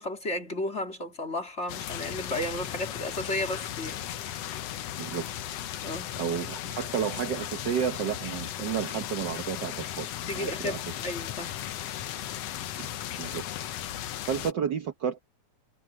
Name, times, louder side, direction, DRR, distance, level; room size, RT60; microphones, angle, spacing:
voice 1, 0.0-4.0 5.8-6.1 10.3-11.6, left 1 dB, 20° left, 3.3 m, -33 dB
sound 1, 1.7-14.5, left 11 dB, 65° left, 1.8 m, -36 dB
voice 2, 6.2-10.8 12.8-12.9 13.2-13.4 14.3-15.2, right 8 dB, 90° right, 0.9 m, -31 dB
omnidirectional pair, 3.4 m